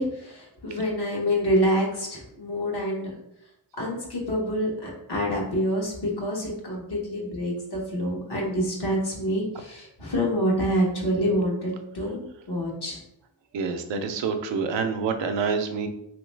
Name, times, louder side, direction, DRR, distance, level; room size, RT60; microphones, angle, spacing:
voice 1, 0.0-3.1 3.8-12.2 12.5-13.0, equal, 65° left, -3 dB, 1.3 m, -27 dB
voice 2, 13.5-15.9, right 5 dB, 90° right, 6 dB, 0.5 m, -27 dB
3.1 x 2.8 x 3.2 m, 0.79 s
cardioid pair, 45°, 42 cm